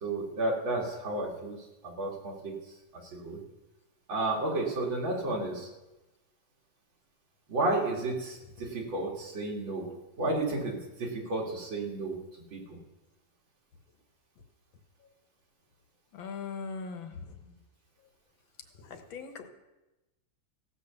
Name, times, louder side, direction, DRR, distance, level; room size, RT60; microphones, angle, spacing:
voice 1, 0.0-1.6 1.8-2.5 3.1-3.4 4.1-5.7 7.5-9.9 10.2-12.2 12.5-12.8 17.1-17.4, right 2 dB, 85° right, -1 dB, 2.9 m, -32 dB
voice 2, 16.1-17.4 18.8-19.5, left 5 dB, 85° left, 6 dB, 1.9 m, -40 dB
16.0 x 6.1 x 6.9 m, 1.0 s
omnidirectional pair, 2.1 m